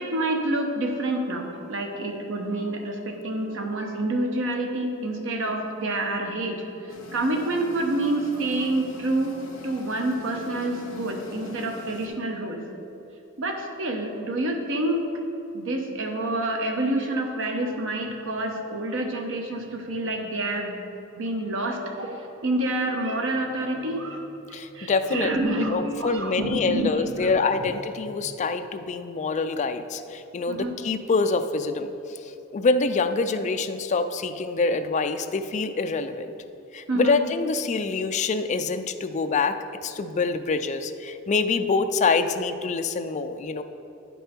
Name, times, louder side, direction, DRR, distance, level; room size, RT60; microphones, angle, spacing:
voice 1, 0.0-9.4 9.6-12.6 13.4-15.0 15.5-20.8 21.2-27.3 28.1-28.2 30.5-30.7 36.9-37.2 40.1-40.2, right 1 dB, 65° right, 3 dB, 0.9 m, -28 dB
sound 1, 6.9-12.1, left 2 dB, 65° left, 1.4 m, -43 dB
voice 2, 24.5-25.3 25.7-32.2 32.5-36.3 36.7-43.6, left 4 dB, 35° left, 8 dB, 0.3 m, -25 dB
9.7 x 5.4 x 4.3 m, 2.9 s
head